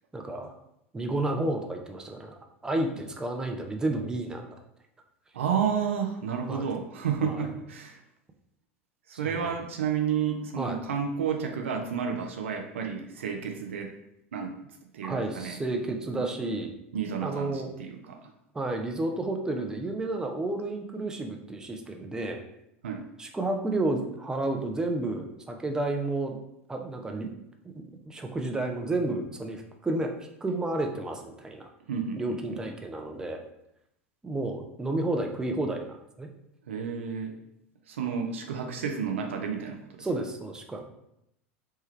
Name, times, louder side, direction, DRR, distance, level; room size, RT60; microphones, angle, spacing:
voice 1, 0.1-0.5 0.9-2.3 2.6-4.4 6.5-6.7 7.2-7.5 9.2-9.5 10.6-10.8 15.0-16.7 17.2-17.7 18.5-22.4 23.2-26.4 26.7-27.3 27.6-30.2 30.4-31.7 32.2-33.4 34.2-36.3 40.0-40.8, right 2 dB, 10° right, 3 dB, 0.4 m, -31 dB
voice 2, 5.3-8.0 9.1-13.9 14.3-14.5 14.9-15.8 16.1-16.2 16.9-18.2 22.8-23.1 31.9-32.2 36.7-37.4 37.9-40.1, right 7 dB, 70° right, 3 dB, 0.4 m, -31 dB
3.1 x 2.2 x 3.1 m, 0.80 s
figure-of-eight pair, 80°, 7 cm